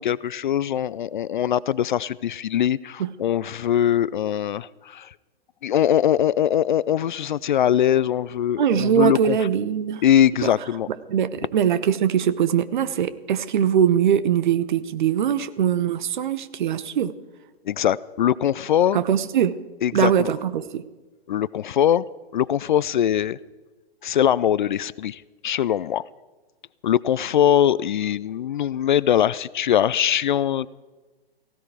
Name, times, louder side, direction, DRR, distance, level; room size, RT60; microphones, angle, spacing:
voice 1, 0.0-5.1 5.6-9.4 10.0-10.9 17.7-19.0 19.8-20.3 21.3-22.0 22.3-23.4 24.0-26.1 26.8-30.7, left 10 dB, 50° left, 20 dB, 0.5 m, -22 dB
voice 2, 8.6-10.0 10.4-10.5 11.1-17.1 18.9-19.6 19.9-20.8, right 9 dB, 50° right, 15 dB, 1.0 m, -22 dB
17.5 x 16.0 x 4.8 m, 1.3 s
figure-of-eight pair, 120°, 31 cm